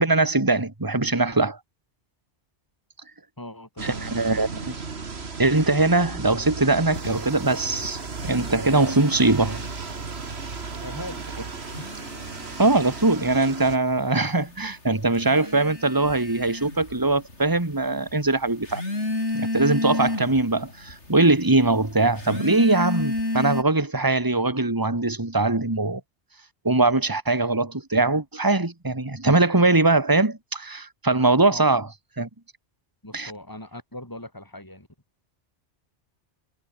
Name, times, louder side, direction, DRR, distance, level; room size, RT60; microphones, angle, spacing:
voice 1, 0.0-1.6 3.8-4.7 5.4-9.6 12.6-18.8 19.3-26.0 26.6-31.9 32.2-32.3 33.1-33.3, right 2 dB, 15° right, 2.2 m, -21 dB
voice 2, 3.4-4.2 10.8-11.3 11.8-11.9 31.5-31.9 33.0-34.9, left 1 dB, 15° left, 4.5 m, -40 dB
sound 1, 3.8-13.8, right 4 dB, 60° right, 2.2 m, -35 dB
sound 2, 6.9-10.0 10.3-11.1 11.5-23.6, left 2 dB, 70° left, 5.6 m, -32 dB
omnidirectional pair, 1.2 m